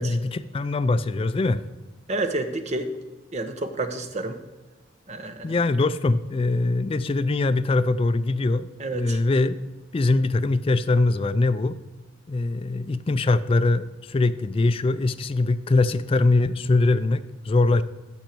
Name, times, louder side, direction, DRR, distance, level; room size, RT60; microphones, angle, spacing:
voice 1, 0.0-1.6 5.4-8.7 8.9-9.6 9.9-11.7 12.3-17.8, left 2 dB, 30° left, 11 dB, 0.3 m, -22 dB
voice 2, 2.1-2.9 3.3-4.4 5.1-5.5 8.8-9.2, right 2 dB, 35° right, 8 dB, 0.8 m, -29 dB
15.0 x 6.2 x 4.5 m, 1.2 s
head